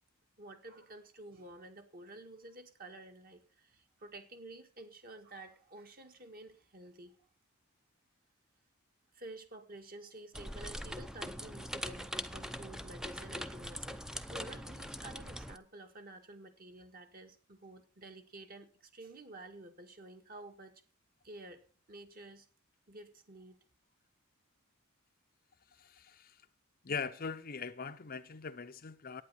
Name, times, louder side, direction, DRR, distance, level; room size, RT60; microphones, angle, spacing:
voice 1, 0.4-7.2 9.1-14.0 14.3-20.7 21.2-21.6 21.9-22.5 22.9-23.6, right 2 dB, 40° right, 1.8 m, -51 dB
sound 1, 10.3-15.6, equal, 5° right, 0.6 m, -42 dB
voice 2, 25.8-26.4 26.8-29.2, left 5 dB, 40° left, 0.7 m, -41 dB
11.0 x 9.3 x 5.7 m
head